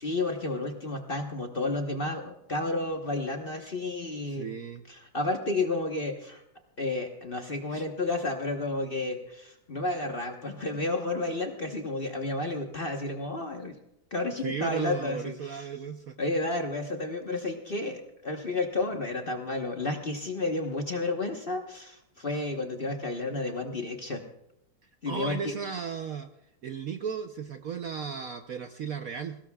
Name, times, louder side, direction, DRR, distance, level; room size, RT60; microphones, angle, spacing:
voice 1, 0.0-4.5 4.9-6.4 6.8-13.7 14.1-15.7 16.2-24.2 25.0-25.5, left 2 dB, 35° left, 3 dB, 1.1 m, -31 dB
voice 2, 4.3-4.8 7.7-7.8 14.4-16.1 25.1-26.3 26.6-29.4, right 7 dB, 60° right, 6 dB, 0.9 m, -35 dB
22.0 x 18.0 x 2.3 m, 0.82 s
omnidirectional pair, 2.1 m